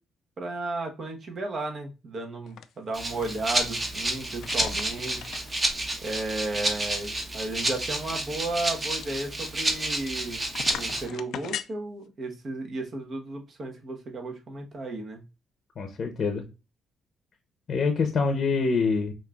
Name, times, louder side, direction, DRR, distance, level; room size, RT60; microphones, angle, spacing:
voice 1, 0.4-5.3 6.0-10.4 10.7-15.2, right 2 dB, 50° right, 2 dB, 1.0 m, -34 dB
sound 1, 2.5-2.7 2.9-3.9 4.4-5.8 6.2-6.3 6.5-6.6 7.0-10.2 10.5-11.7, left 9 dB, 75° left, 0.3 m, -40 dB
Rattle (instrument), 2.9-11.0, right 1 dB, 25° right, 1.0 m, -30 dB
voice 2, 15.8-16.4 17.7-19.1, left 4 dB, 50° left, 4 dB, 0.7 m, -25 dB
5.2 x 2.6 x 2.3 m, 0.28 s
cardioid pair, 90°, 0 cm